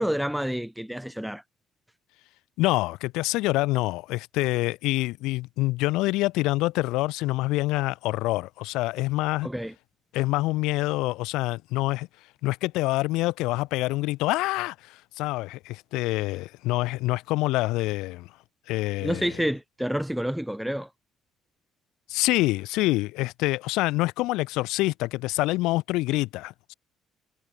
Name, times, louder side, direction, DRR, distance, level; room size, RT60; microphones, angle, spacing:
voice 1, 0.0-1.4 9.4-9.7 19.0-20.9, equal, ahead, 2.7 m, -28 dB
voice 2, 2.6-9.5 10.1-12.1 12.4-18.3 18.7-19.3 22.1-26.7, left 19 dB, 90° left, 4.6 m, -26 dB
cardioid pair, 100°, 0 cm